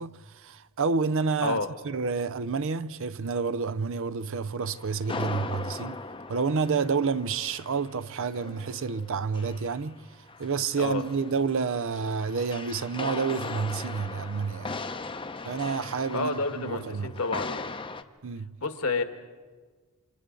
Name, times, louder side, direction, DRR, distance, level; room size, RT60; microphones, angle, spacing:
voice 1, 0.0-1.6 1.8-6.0 6.3-10.0 10.4-14.8 15.4-17.1 18.2-18.5, right 5 dB, 65° right, 0.6 m, -29 dB
sound 1, 4.6-10.0 10.3-18.0, left 3 dB, 25° left, 0.7 m, -39 dB
voice 2, 16.1-17.7 18.6-19.0, left 3 dB, 70° left, 1.5 m, -29 dB
28.5 x 26.5 x 3.9 m
head